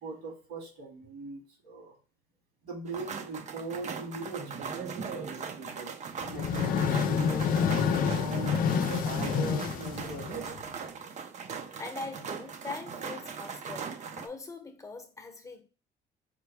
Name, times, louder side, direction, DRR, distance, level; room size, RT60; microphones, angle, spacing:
voice 1, 0.0-2.0 2.6-5.9 6.3-8.5 9.0-10.5, right 3 dB, 75° right, 2.1 m, -41 dB
sound 1, 2.9-14.3, right 6 dB, 45° right, 0.7 m, -39 dB
sound 2, 6.2-10.8, left 7 dB, 55° left, 0.5 m, -28 dB
voice 2, 11.8-15.6, left 3 dB, 20° left, 0.9 m, -42 dB
5.0 x 2.2 x 4.6 m
cardioid pair, 110°, 17 cm